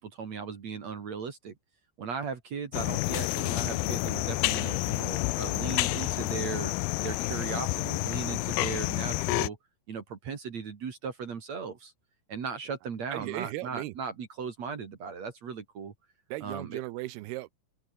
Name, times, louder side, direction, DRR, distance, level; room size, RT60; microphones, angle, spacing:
voice 1, 0.0-1.5 2.0-6.7 7.0-9.6 9.9-11.9 12.3-15.9 16.4-16.8, right 6 dB, 50° right, 3.4 m, -37 dB
sound 1, 2.7-9.5, left 22 dB, 85° left, 2.5 m, -29 dB
voice 2, 13.1-13.9 16.3-17.5, right 17 dB, 90° right, 2.9 m, -36 dB
open air
omnidirectional pair, 4.4 m